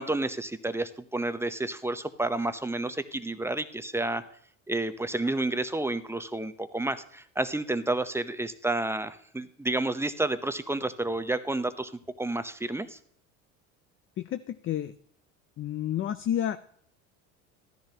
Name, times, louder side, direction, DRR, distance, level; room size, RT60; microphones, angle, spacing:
voice 1, 0.0-4.2 4.7-11.9 12.2-13.0, right 2 dB, 5° right, 12 dB, 0.6 m, -30 dB
voice 2, 14.2-15.0 15.6-16.6, left 10 dB, 35° left, 12 dB, 0.5 m, -30 dB
13.5 x 10.0 x 2.8 m, 0.64 s
supercardioid pair, 90°, 39 cm